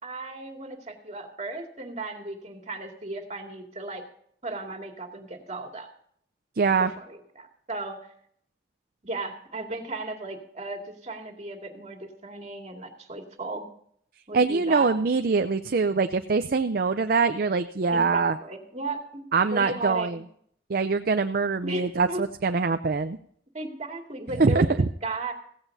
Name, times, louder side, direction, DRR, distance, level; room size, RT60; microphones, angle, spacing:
voice 1, 0.0-4.0 4.4-5.9 6.8-8.1 9.0-13.7 14.3-14.9 17.9-20.2 21.6-22.2 23.5-25.3, right 2 dB, 40° right, 2 dB, 2.3 m, -36 dB
voice 2, 6.6-6.9 14.3-18.4 19.3-20.2 20.7-23.2 24.4-24.7, right 4 dB, 55° right, 9 dB, 0.5 m, -23 dB
16.0 x 16.0 x 2.7 m, 0.64 s
head